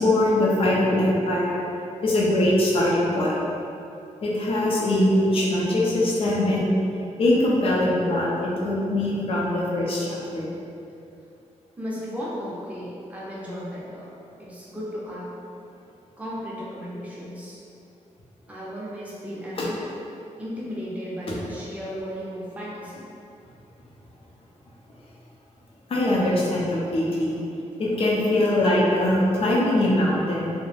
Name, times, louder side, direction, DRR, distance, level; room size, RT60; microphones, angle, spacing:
voice 1, 0.0-1.6 2.0-3.4 4.2-6.7 7.2-10.5 25.9-27.4 27.8-30.5, left 1 dB, 50° left, -5 dB, 0.5 m, -22 dB
voice 2, 11.8-14.1 14.4-15.3 16.2-17.6 18.5-19.8 20.4-23.1, equal, 10° right, -7 dB, 0.5 m, -35 dB
2.3 x 2.0 x 3.1 m, 2.7 s
wide cardioid pair, 155°, 13 cm